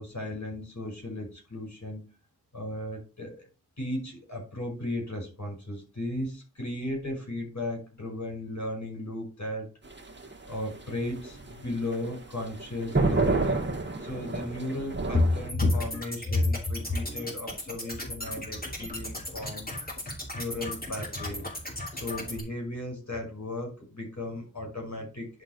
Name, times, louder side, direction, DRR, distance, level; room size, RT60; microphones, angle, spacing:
voice 1, 0.0-2.0 2.5-3.5 3.8-9.7 10.5-13.5 14.0-19.7 20.3-21.5 22.0-25.4, left 2 dB, 50° left, 0 dB, 5.5 m, -33 dB
sound 1, 9.8-15.5, right 3 dB, 30° right, 1.6 m, -29 dB
sound 2, 15.5-22.4, left 1 dB, 25° left, 3.2 m, -37 dB
10.5 x 4.5 x 4.5 m, 0.32 s
wide cardioid pair, 60°, 35 cm